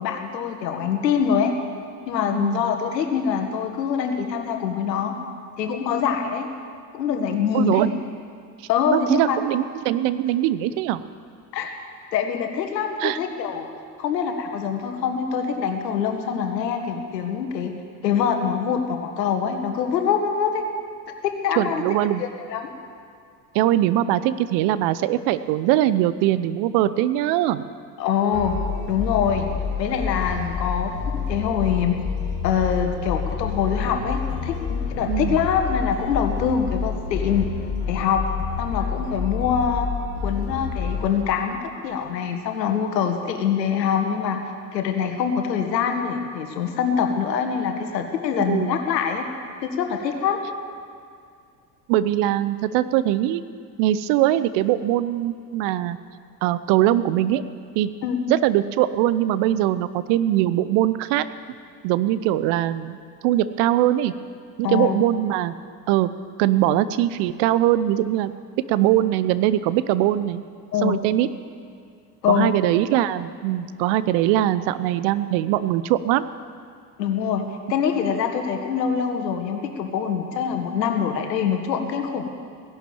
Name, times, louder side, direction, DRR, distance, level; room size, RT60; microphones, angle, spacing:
voice 1, 0.0-1.6 2.1-5.2 5.6-6.5 6.9-7.9 8.7-9.4 11.5-11.7 12.1-13.7 14.0-17.7 18.0-20.7 21.2-21.8 22.2-22.7 28.0-28.6 28.9-29.5 29.8-31.0 31.3-32.0 32.4-37.5 37.9-38.3 38.6-39.9 40.2-44.4 44.7-49.3 49.6-50.4 58.0-58.2 64.6-65.0 70.7-71.0 72.2-72.5 77.0-82.3, left 7 dB, 75° left, 5 dB, 1.9 m, -24 dB
voice 2, 7.5-7.9 8.9-11.0 13.0-13.2 21.6-22.2 23.5-27.6 35.1-35.4 48.5-48.7 51.9-53.4 53.8-56.0 56.4-57.4 57.7-57.9 58.3-61.2 61.8-63.0 63.2-64.1 64.6-65.5 65.9-66.1 66.4-68.3 68.7-70.4 70.8-71.3 72.3-76.2, right 13 dB, 55° right, 14 dB, 0.8 m, -21 dB
sound 1, 28.3-41.2, left 6 dB, 55° left, 1.9 m, -28 dB
17.0 x 11.5 x 7.2 m, 2.3 s
hypercardioid pair, 70°, 50 cm